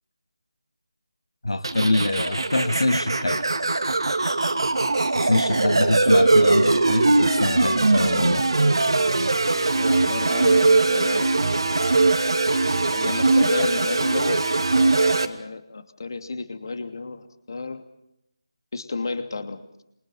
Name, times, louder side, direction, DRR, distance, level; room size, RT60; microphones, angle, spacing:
voice 1, 1.4-3.5 5.1-8.5, left 2 dB, 75° left, 7 dB, 1.8 m, -24 dB
sound 1, 1.6-15.3, right 3 dB, 65° right, 2.5 m, -21 dB
voice 2, 9.5-11.3 12.9-14.5 15.2-17.8 18.7-19.8, left 4 dB, 50° left, 9 dB, 2.7 m, -32 dB
28.0 x 24.0 x 5.2 m, 0.81 s
figure-of-eight pair, 160°, 3 cm